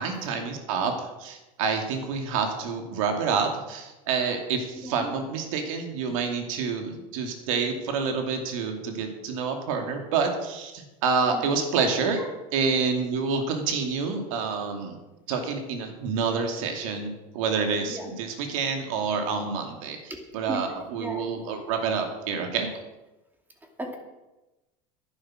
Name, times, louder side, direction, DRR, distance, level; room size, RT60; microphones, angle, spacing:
voice 1, 0.0-12.2 12.5-15.0 15.3-20.0 20.3-22.7, right 5 dB, 85° right, 4 dB, 2.6 m, -28 dB
voice 2, 11.3-11.6 12.2-12.3 17.9-18.1 20.5-20.6 21.0-21.2 23.8-24.0, right 1 dB, 10° right, 3 dB, 2.5 m, -36 dB
11.5 x 11.0 x 6.3 m, 1.0 s
supercardioid pair, 130°, 17 cm